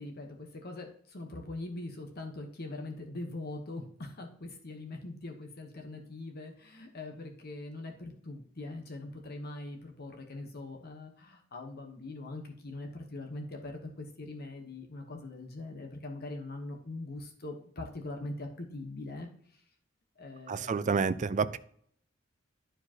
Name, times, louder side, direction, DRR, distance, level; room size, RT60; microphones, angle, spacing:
voice 1, 0.0-19.6 20.2-21.3, left 2 dB, 50° left, 1.1 m, -42 dB
voice 2, 20.5-21.6, right 5 dB, 40° right, 0.4 m, -29 dB
11.5 x 4.9 x 2.9 m
head